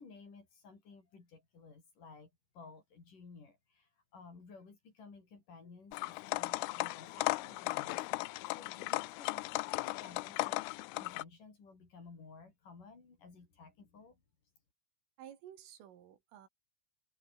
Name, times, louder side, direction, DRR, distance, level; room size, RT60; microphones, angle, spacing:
voice 1, 0.0-9.5 9.8-14.2, left 4 dB, 40° left, 6.7 m, -55 dB
sound 1, 5.9-11.2, left 23 dB, 85° left, 3.2 m, -36 dB
voice 2, 15.2-16.5, right 10 dB, 80° right, 5.1 m, -53 dB
omnidirectional pair, 5.8 m